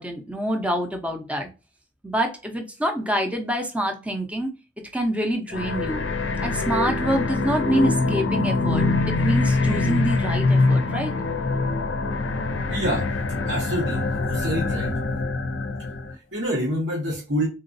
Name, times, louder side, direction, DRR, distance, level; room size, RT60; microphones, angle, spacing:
voice 1, 0.0-1.5 2.0-4.5 4.9-6.0 6.4-11.1, equal, 5° right, 4 dB, 0.6 m, -26 dB
sound 1, 5.5-16.1, left 3 dB, 85° left, 0.5 m, -24 dB
voice 2, 12.7-13.1 13.5-15.0 16.1-17.5, equal, 80° right, -4 dB, 1.3 m, -27 dB
3.8 x 2.5 x 2.5 m, 0.30 s
head